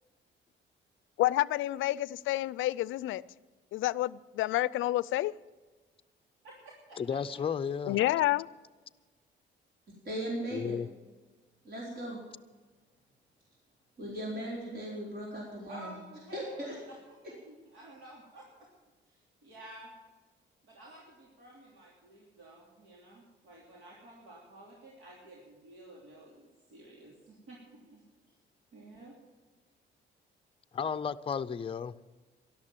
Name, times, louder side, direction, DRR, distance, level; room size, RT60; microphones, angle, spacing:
voice 1, 1.2-3.2 3.7-5.3 7.9-8.4, left 15 dB, 80° left, 20 dB, 0.4 m, -29 dB
voice 2, 6.4-7.2 7.9-8.2 15.7-17.2 17.5-18.7 19.1-19.9 20.6-28.0 28.7-29.2, right 1 dB, 80° right, -3 dB, 3.1 m, -52 dB
voice 3, 7.0-8.0 10.5-10.9 30.7-31.9, left 7 dB, 25° left, 10 dB, 0.5 m, -33 dB
voice 4, 10.0-10.7 11.6-12.2 14.0-16.0 16.3-16.8, right 1 dB, 50° right, -3 dB, 4.5 m, -37 dB
13.0 x 11.5 x 7.4 m, 1.3 s
cardioid pair, 90°, 20 cm